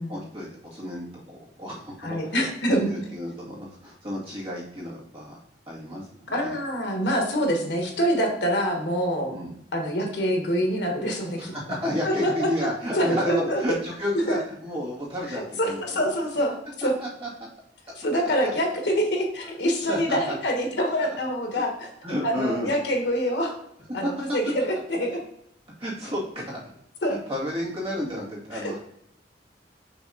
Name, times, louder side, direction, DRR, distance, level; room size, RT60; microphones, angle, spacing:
voice 1, 0.1-6.6 9.3-9.5 11.4-16.1 16.8-17.5 18.4-18.5 19.9-20.4 21.0-21.2 22.0-22.7 24.0-24.1 25.8-26.7 27.1-28.8, left 1 dB, 35° right, -6 dB, 2.2 m, -32 dB
voice 2, 2.0-2.9 6.3-9.3 9.7-11.8 12.0-12.5 12.9-13.6 14.3-14.4 15.3-16.5 16.8-16.9 18.0-21.9 22.2-23.5 23.9-25.2 27.0-27.2 28.5-28.7, equal, 75° left, 2 dB, 1.4 m, -25 dB
6.3 x 3.4 x 5.1 m, 0.75 s
head